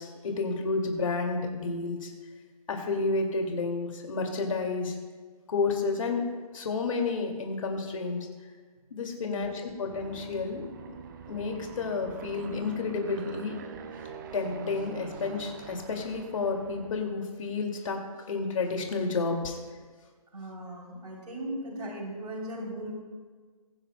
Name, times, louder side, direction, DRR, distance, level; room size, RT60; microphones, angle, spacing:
voice 1, 0.0-2.1 2.7-5.0 5.5-8.3 8.9-10.7 11.3-13.5 14.3-18.0 18.3-19.6, left 4 dB, 55° left, 2 dB, 2.2 m, -31 dB
voice 2, 9.2-9.7 20.3-22.9, right 1 dB, 90° right, -1 dB, 3.2 m, -38 dB
Aircraft, 9.9-17.2, right 6 dB, 30° right, 0.8 m, -44 dB
21.0 x 10.0 x 2.2 m, 1.5 s
hypercardioid pair, 155°, 19 cm